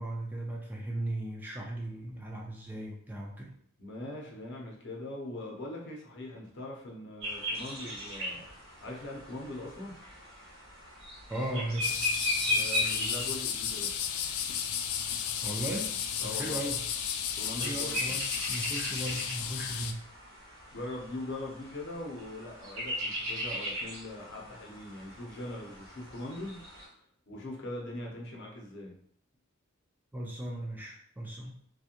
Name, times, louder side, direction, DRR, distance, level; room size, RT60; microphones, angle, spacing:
voice 1, 0.0-3.6 11.3-11.9 15.4-15.9 16.2-16.8 17.6-20.0 30.1-31.6, right 1 dB, 10° right, -1 dB, 0.3 m, -37 dB
voice 2, 3.8-8.5 8.8-10.0 12.5-14.0 16.2-16.6 17.3-18.2 20.7-26.6 27.3-28.9, left 1 dB, 55° left, -2 dB, 0.7 m, -41 dB
sound 1, 7.2-26.9, left 1 dB, 65° right, 1.2 m, -38 dB
sound 2, 11.8-19.9, left 8 dB, 80° left, 0.3 m, -34 dB
2.8 x 2.3 x 2.4 m, 0.65 s
head